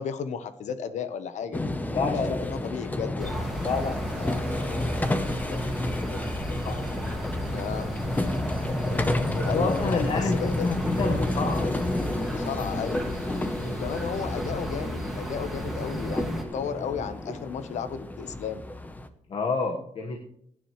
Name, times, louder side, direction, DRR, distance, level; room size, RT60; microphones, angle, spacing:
voice 1, 0.0-1.6 2.1-3.5 7.5-7.9 9.4-10.7 12.2-13.1 13.8-18.6, left 7 dB, 75° left, 11 dB, 1.1 m, -34 dB
sound 1, 1.5-19.1, left 1 dB, 15° left, 0.9 m, -31 dB
voice 2, 1.9-2.5 3.6-5.3 6.0-6.2 6.4-7.0 8.7-9.1 9.4-11.7 13.5-13.8 19.3-20.2, left 4 dB, 50° left, 3 dB, 1.4 m, -30 dB
sound 2, 3.2-16.4, right 1 dB, ahead, 2.0 m, -35 dB
23.5 x 9.9 x 3.2 m, 0.71 s
wide cardioid pair, 150°, 12 cm